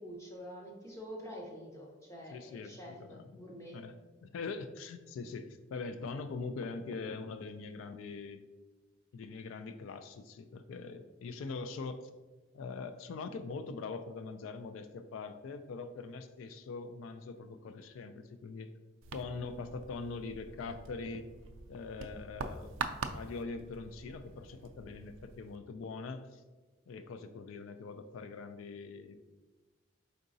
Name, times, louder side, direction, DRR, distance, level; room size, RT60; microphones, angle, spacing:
voice 1, 0.0-3.8, equal, 15° left, -2 dB, 0.8 m, -47 dB
voice 2, 2.3-3.4 3.7-4.0 4.2-8.4 9.1-12.1 12.5-18.7 19.1-21.3 21.7-22.8 23.1-26.4 26.9-29.2, left 4 dB, 85° left, 11 dB, 0.3 m, -42 dB
sound 1, 19.0-25.6, right 5 dB, 80° right, 0.3 m, -44 dB
4.6 x 3.9 x 2.6 m, 1.2 s
head